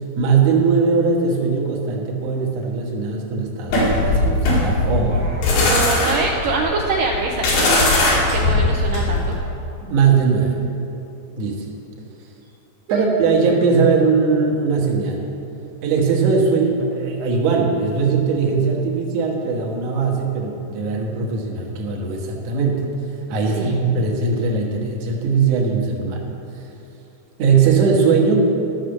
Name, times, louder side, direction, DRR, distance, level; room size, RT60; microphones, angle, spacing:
voice 1, 0.2-5.2 9.8-10.6 11.4-11.7 12.9-15.2 15.8-22.9 23.3-26.3 27.4-28.5, right 5 dB, 55° right, -1 dB, 2.0 m, -19 dB
sound 1, 3.7-9.4, left 2 dB, 85° left, 4.0 m, -19 dB
voice 2, 5.1-7.9 8.3-9.4 12.9-13.1 23.6-23.8, right 3 dB, 75° right, -1 dB, 2.2 m, -25 dB
12.0 x 6.6 x 6.5 m, 2.9 s
omnidirectional pair, 4.3 m